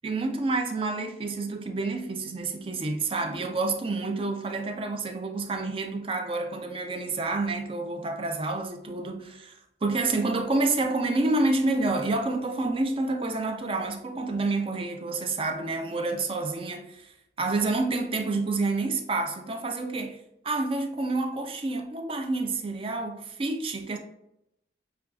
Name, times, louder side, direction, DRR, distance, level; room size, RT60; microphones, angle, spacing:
voice 1, 0.0-9.5 9.8-24.0, right 3 dB, 30° right, 0.4 m, -28 dB
6.3 x 2.3 x 2.3 m
head